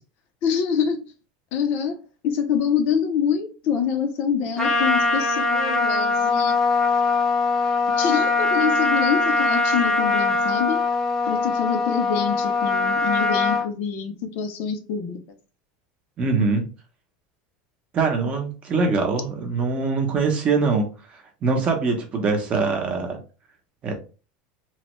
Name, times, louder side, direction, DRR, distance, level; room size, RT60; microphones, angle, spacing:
voice 1, 0.4-1.1 1.5-2.0 2.2-6.6 8.0-10.8 11.3-15.2, left 7 dB, 50° left, 0.6 m, -25 dB
Trumpet, 4.6-13.7, left 3 dB, 10° left, 0.7 m, -22 dB
voice 2, 16.2-16.7 17.9-23.2 23.8-23.9, right 4 dB, 25° right, 0.7 m, -23 dB
3.1 x 2.1 x 3.0 m
supercardioid pair, 155°, 4 cm